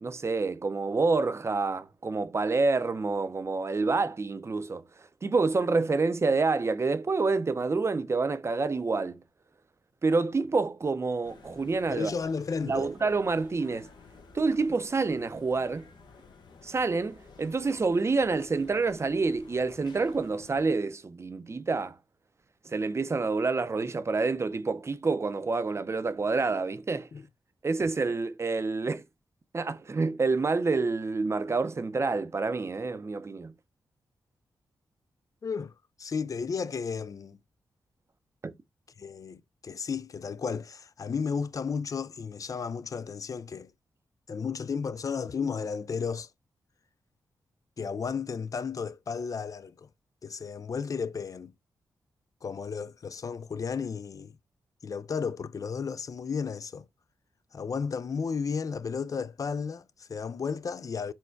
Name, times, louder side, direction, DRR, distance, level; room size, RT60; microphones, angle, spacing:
voice 1, 0.0-9.2 10.0-12.1 12.7-13.9 14.3-15.9 16.6-22.0 22.6-27.1 27.6-29.0 29.5-33.5 38.4-38.5, right 3 dB, 35° right, 0.5 m, -28 dB
sound 1, 11.2-20.7, left 4 dB, 75° left, 1.0 m, -53 dB
voice 2, 11.9-12.9 27.1-27.3 35.4-35.7 36.0-37.4 39.0-43.7 44.3-46.3 47.8-49.9 50.2-51.5 52.4-54.4 54.8-56.9 57.5-61.1, left 5 dB, 50° left, 0.4 m, -33 dB
4.4 x 2.2 x 4.5 m
cardioid pair, 60°, 8 cm